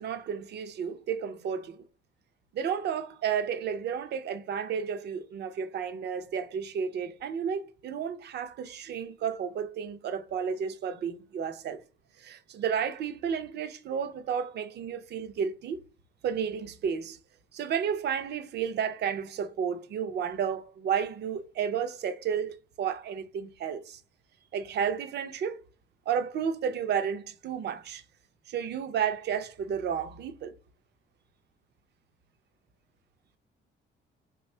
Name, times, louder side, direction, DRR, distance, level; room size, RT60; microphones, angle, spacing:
voice 1, 0.0-1.8 2.5-11.8 12.2-15.8 16.2-17.2 17.5-22.5 22.8-24.0 24.5-25.6 26.1-28.0 28.5-30.5, right 7 dB, 55° right, 0.5 m, -32 dB
3.2 x 2.3 x 4.2 m
cardioid pair, 140°, 20 cm